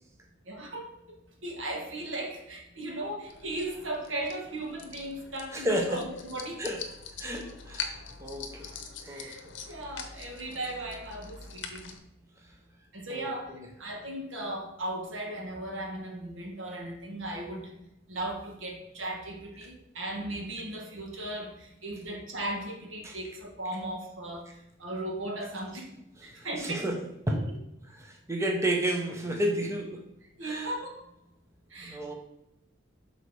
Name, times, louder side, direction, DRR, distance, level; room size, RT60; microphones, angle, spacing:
voice 1, 0.5-0.9 1.4-6.7 9.0-9.4 9.7-11.9 12.9-13.5 13.8-17.7 18.1-24.5 24.8-25.9 26.2-26.9 27.3-27.6 30.4-31.0 31.7-32.2, right 1 dB, 85° right, 0 dB, 1.5 m, -37 dB
sound 1, 3.3-12.0, left 6 dB, 70° left, 0.8 m, -43 dB
voice 2, 5.5-6.0 6.6-6.9 7.2-7.9 8.2-8.7 9.1-9.3 13.1-13.7 23.0-23.2 26.6-27.0 27.3-27.5 27.9-30.1 30.4-30.7 31.8-32.1, right 1 dB, 15° right, 1 dB, 0.8 m, -31 dB
6.4 x 4.0 x 4.7 m, 0.88 s
head